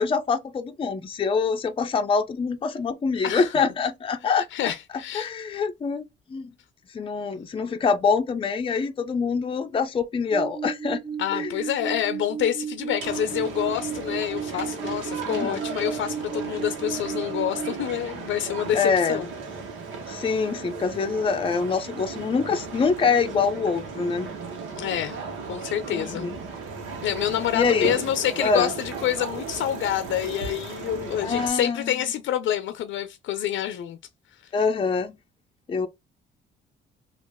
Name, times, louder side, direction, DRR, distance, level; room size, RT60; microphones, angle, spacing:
voice 1, 0.0-4.7 5.1-6.0 6.3-6.5 6.9-11.0 11.3-11.6 15.3-15.6 18.7-19.3 20.1-24.3 25.9-26.4 27.5-27.9 28.4-28.7 31.2-31.9 34.5-35.1 35.7-35.9, left 5 dB, 25° left, 0.5 m, -25 dB
voice 2, 4.3-5.3 7.3-7.5 11.2-19.3 24.8-25.2 25.5-26.3 27.0-34.0, left 11 dB, 75° left, 0.5 m, -27 dB
sound 1, 10.3-17.7, right 7 dB, 30° right, 0.5 m, -34 dB
sound 2, 13.0-31.5, right 4 dB, 90° right, 1.1 m, -36 dB
3.0 x 2.4 x 3.5 m
cardioid pair, 90°, 20 cm